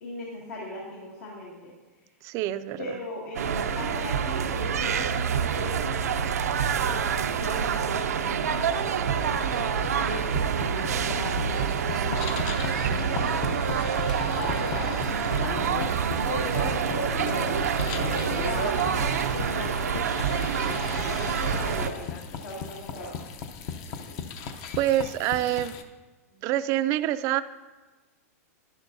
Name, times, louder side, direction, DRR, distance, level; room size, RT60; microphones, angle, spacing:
voice 1, 0.0-1.7 2.8-5.8 6.8-13.6 14.4-15.9 16.3-19.9 20.5-22.0 22.3-23.2, left 1 dB, 75° left, -5 dB, 1.9 m, -38 dB
voice 2, 2.2-2.9 24.8-25.7 26.4-27.4, right 13 dB, 40° right, 13 dB, 0.4 m, -26 dB
sound 1, 3.3-21.9, right 7 dB, 90° right, 0.6 m, -27 dB
sound 2, 8.7-25.8, left 6 dB, 45° left, 0.7 m, -37 dB
11.0 x 10.5 x 2.7 m, 1.2 s
hypercardioid pair, 130°, 8 cm